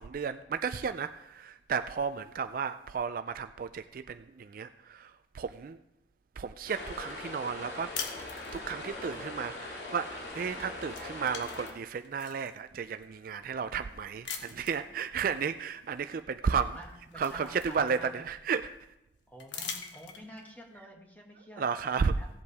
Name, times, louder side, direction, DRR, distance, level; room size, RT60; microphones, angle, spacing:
voice 1, 0.0-5.8 6.4-7.9 8.5-16.8 17.1-18.8 21.6-22.2, right 6 dB, 50° right, 11 dB, 0.3 m, -33 dB
sound 1, 6.7-11.7, left 2 dB, 70° left, 2.3 m, -41 dB
sound 2, 7.9-8.9 10.3-10.6 10.9-12.5 13.1-13.2 14.2-14.9 16.3-16.4 16.8-18.3 19.4-20.5, left 6 dB, 85° left, 1.3 m, -42 dB
voice 2, 16.5-18.2 19.3-21.6 22.0-22.3, equal, 10° left, -1 dB, 1.8 m, -50 dB
16.5 x 8.0 x 3.5 m, 0.90 s
head